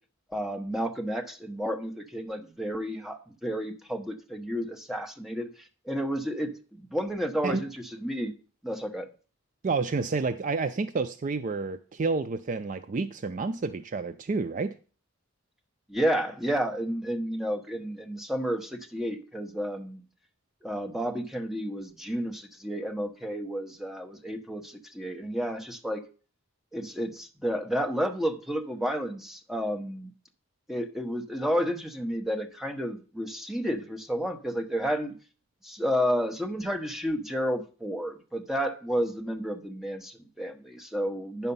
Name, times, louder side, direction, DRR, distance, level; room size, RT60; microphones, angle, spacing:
voice 1, 0.3-5.5 5.9-7.7 8.0-8.3 8.6-9.1 15.9-20.0 20.6-26.0 26.7-30.1 30.7-35.1 35.6-41.5, equal, ahead, 4 dB, 1.0 m, -31 dB
voice 2, 9.6-14.8, right 4 dB, 35° right, 11 dB, 0.4 m, -29 dB
9.8 x 5.8 x 5.4 m, 0.37 s
head